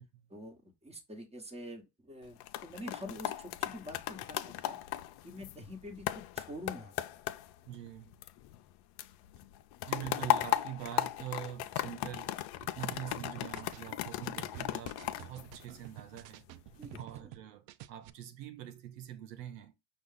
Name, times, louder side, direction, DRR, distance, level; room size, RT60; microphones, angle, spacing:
voice 1, 0.3-4.8 5.2-6.9 16.8-17.3, left 1 dB, 15° right, 1.3 m, -46 dB
sound 1, 2.2-8.7 9.0-16.2 16.7-17.0, left 14 dB, 55° left, 0.6 m, -37 dB
voice 2, 7.7-8.2 9.8-16.5 16.9-19.7, right 11 dB, 90° right, 0.9 m, -45 dB
sound 2, 12.9-17.4 17.7-18.1, right 14 dB, 65° right, 0.6 m, -49 dB
5.5 x 2.4 x 3.8 m
supercardioid pair, 95°, 48 cm